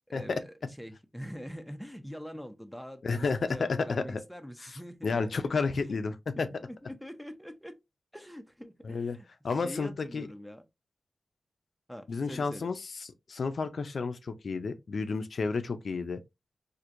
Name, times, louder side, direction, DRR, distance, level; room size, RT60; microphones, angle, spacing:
voice 1, 0.0-5.4 5.8-6.0 6.6-7.8 8.1-9.3 9.5-10.6 11.9-12.7, equal, ahead, 0.5 m, -44 dB
voice 2, 3.0-4.2 5.0-6.5 8.8-9.2 9.4-10.3 12.1-16.2, left 4 dB, 65° left, 0.4 m, -31 dB
4.4 x 2.5 x 2.5 m
wide cardioid pair, 135°, 0 cm